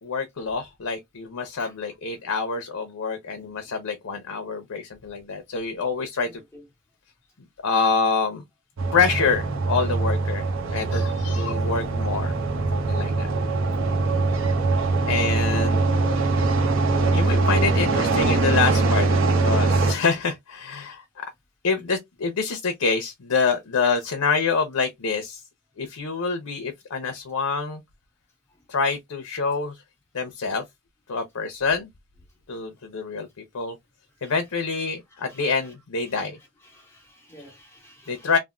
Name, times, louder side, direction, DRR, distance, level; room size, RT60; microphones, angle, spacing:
voice 1, 0.0-6.4 7.6-8.4 8.9-10.4 10.7-12.3 12.7-13.3 15.1-15.9 17.1-21.0 21.6-25.4 25.8-27.8 28.7-29.8 30.1-30.6 31.1-31.9 32.5-33.8 34.2-36.4 38.1-38.4, left 5 dB, 85° left, 0.6 m, -26 dB
voice 2, 3.3-3.6 6.3-6.6 13.4-13.8 34.2-34.3 35.2-35.5 36.0-36.3 36.6-38.3, equal, 10° left, 1.2 m, -50 dB
sound 1, 8.8-19.9, right 3 dB, 60° right, 0.6 m, -22 dB
3.4 x 2.1 x 2.4 m
head